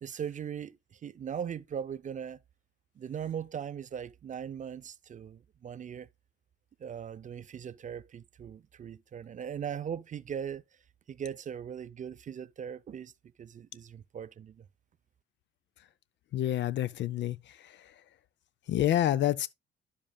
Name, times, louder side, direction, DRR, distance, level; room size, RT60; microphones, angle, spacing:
voice 1, 0.0-2.4 3.0-6.1 6.8-10.6 11.1-13.1 13.4-14.6, right 8 dB, 40° right, 0.4 m, -39 dB
voice 2, 16.3-17.9 18.7-19.5, left 12 dB, 65° left, 0.5 m, -28 dB
10.0 x 7.2 x 2.2 m
cardioid pair, 90°, 20 cm